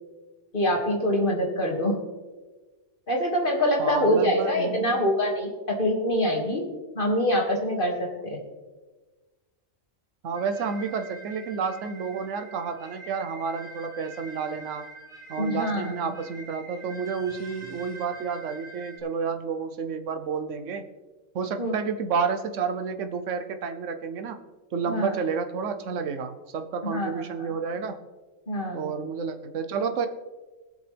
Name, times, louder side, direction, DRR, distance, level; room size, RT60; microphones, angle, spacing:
voice 1, 0.5-2.0 3.1-6.6 7.0-8.4 15.4-16.1 21.6-21.7 24.9-25.1 26.8-27.1 27.4-27.5 28.5-28.9, equal, 40° left, 0 dB, 2.4 m, -25 dB
voice 2, 3.8-5.0 10.2-14.9 15.3-20.9 21.3-24.4 24.7-28.0 28.7-30.1, right 5 dB, 70° right, 7 dB, 1.2 m, -30 dB
sound 1, 10.3-19.0, right 2 dB, 5° right, 3.6 m, -45 dB
20.0 x 7.9 x 3.4 m, 1.3 s
omnidirectional pair, 1.3 m